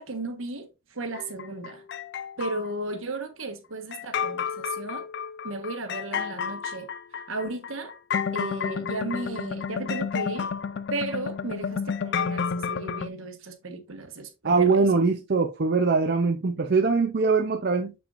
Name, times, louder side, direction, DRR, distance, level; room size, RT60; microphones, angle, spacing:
voice 1, 0.0-1.8 2.4-5.1 5.4-6.9 7.1-7.9 8.3-10.5 10.9-14.8, right 2 dB, 70° right, 1.4 m, -35 dB
sound 1, 1.1-2.7 3.9-13.1, left 6 dB, 55° left, 0.4 m, -31 dB
voice 2, 14.4-17.9, right 4 dB, 45° right, 0.5 m, -22 dB
6.9 x 6.0 x 2.5 m
head